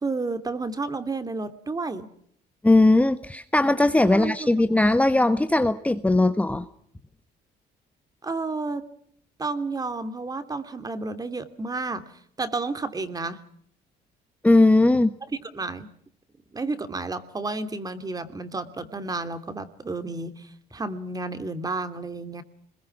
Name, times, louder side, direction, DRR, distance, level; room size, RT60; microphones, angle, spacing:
voice 1, 0.0-2.1 4.1-4.8 8.2-8.8 9.4-12.1 12.4-13.4 15.4-15.9 16.5-22.4, right 3 dB, 20° right, 10 dB, 2.8 m, -31 dB
voice 2, 2.6-6.6 14.4-15.1, left 2 dB, 10° left, 9 dB, 1.2 m, -19 dB
29.5 x 21.5 x 6.1 m, 0.66 s
cardioid pair, 110°, 17 cm